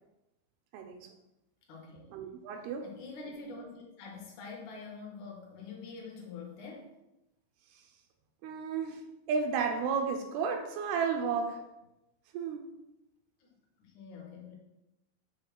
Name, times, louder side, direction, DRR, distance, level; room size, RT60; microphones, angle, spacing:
voice 1, 0.7-1.1 2.1-2.9 8.4-9.0 9.3-11.7 12.3-12.7, right 5 dB, 85° right, 2.5 m, -32 dB
voice 2, 1.7-2.1 2.8-6.9 13.8-14.5, left 4 dB, 65° left, 2.4 m, -45 dB
7.2 x 3.2 x 5.9 m
omnidirectional pair, 4.4 m